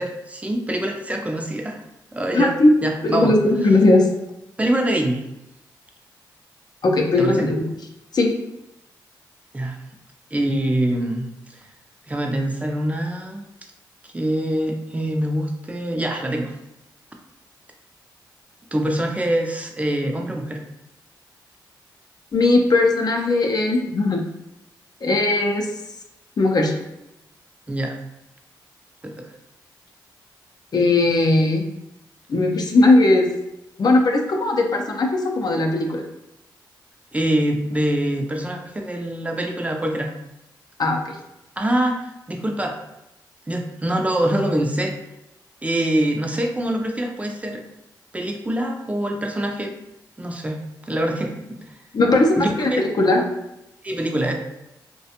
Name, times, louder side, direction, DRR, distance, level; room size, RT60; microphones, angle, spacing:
voice 1, 0.0-1.8 2.1-2.5 2.8-3.3 4.6-5.2 7.2-7.4 9.5-9.8 10.3-11.6 12.1-13.4 14.1-16.5 18.7-20.6 27.7-28.0 29.0-29.1 37.1-40.1 41.6-42.8 43.5-44.9 45.6-47.6 48.1-49.7 50.2-50.6 50.8-51.3 52.3-52.8 53.8-54.3, right 1 dB, 15° right, 2 dB, 0.5 m, -24 dB
voice 2, 2.3-2.7 3.0-4.1 6.8-7.6 8.1-8.3 22.3-24.2 25.0-25.7 26.4-26.7 30.7-31.6 32.3-33.2 33.8-36.0 40.8-41.0 51.9-53.2, left 2 dB, 50° left, 2 dB, 0.5 m, -18 dB
2.4 x 2.2 x 2.8 m, 0.89 s
supercardioid pair, 50°, 8 cm